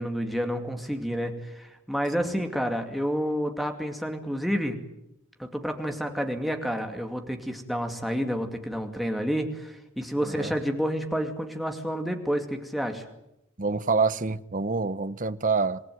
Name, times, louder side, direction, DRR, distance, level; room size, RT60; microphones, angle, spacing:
voice 1, 0.0-4.8 5.4-13.1, equal, ahead, 2.4 m, -29 dB
voice 2, 10.2-10.5 13.6-15.8, right 4 dB, 40° right, 0.9 m, -27 dB
27.5 x 19.5 x 9.5 m
head